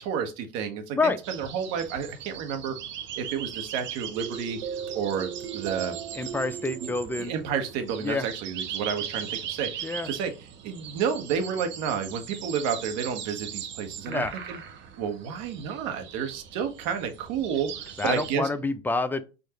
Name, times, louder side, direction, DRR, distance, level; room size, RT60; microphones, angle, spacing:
voice 1, 0.0-2.8 3.2-4.6 4.9-6.0 6.8-6.9 7.2-10.3 10.6-14.6 15.0-18.5, right 7 dB, 55° right, 1.1 m, -31 dB
sound 1, 1.2-18.3, right 9 dB, 40° right, 0.7 m, -39 dB
sound 2, 4.1-8.6, right 8 dB, 75° right, 0.7 m, -38 dB
voice 2, 6.1-7.3 8.0-8.3 9.8-10.1 14.1-14.3 18.0-19.2, left 3 dB, 5° left, 0.4 m, -27 dB
4.7 x 2.5 x 2.9 m
hypercardioid pair, 85°, 31 cm